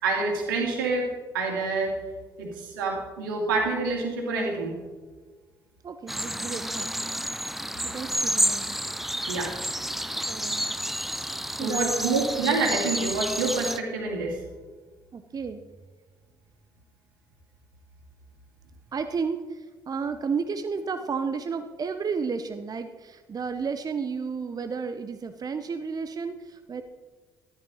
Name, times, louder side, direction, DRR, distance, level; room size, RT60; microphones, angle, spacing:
voice 1, 0.0-1.1 1.3-1.9 2.4-4.7 9.3-9.5 11.6-14.4, right 3 dB, 85° right, 1 dB, 2.4 m, -27 dB
voice 2, 5.8-6.9 7.8-8.8 10.2-10.7 11.5-12.0 15.1-15.6 18.9-26.8, right 5 dB, 35° right, 9 dB, 0.8 m, -32 dB
sound 1, 6.1-13.8, equal, ahead, 0.6 m, -30 dB
14.0 x 10.5 x 4.2 m, 1.4 s
hypercardioid pair, 50°, 11 cm